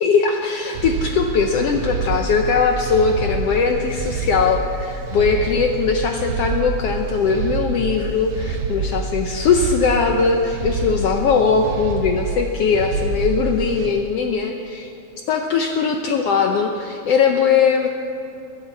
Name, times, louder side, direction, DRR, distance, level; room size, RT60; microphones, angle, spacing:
voice 1, 0.0-14.9 15.3-17.9, left 5 dB, 70° left, 3 dB, 1.6 m, -20 dB
sound 1, 0.7-13.9, right 4 dB, 85° right, 2.5 m, -27 dB
21.5 x 8.3 x 7.6 m, 2.7 s
omnidirectional pair, 3.4 m